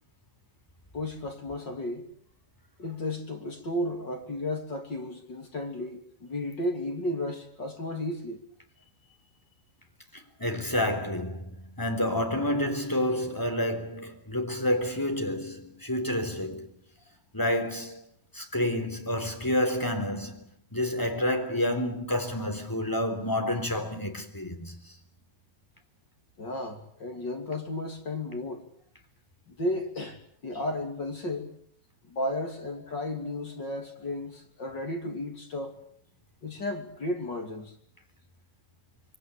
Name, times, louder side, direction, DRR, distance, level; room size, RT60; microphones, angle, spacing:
voice 1, 0.9-2.0 2.8-8.4 26.4-28.6 29.5-31.5 32.1-35.8 36.4-37.7, left 1 dB, 30° left, 3.1 m, -33 dB
voice 2, 10.1-16.7 17.3-18.0 18.3-20.5 20.7-24.9, left 1 dB, 5° left, 3.1 m, -29 dB
27.0 x 23.5 x 8.6 m
omnidirectional pair, 4.8 m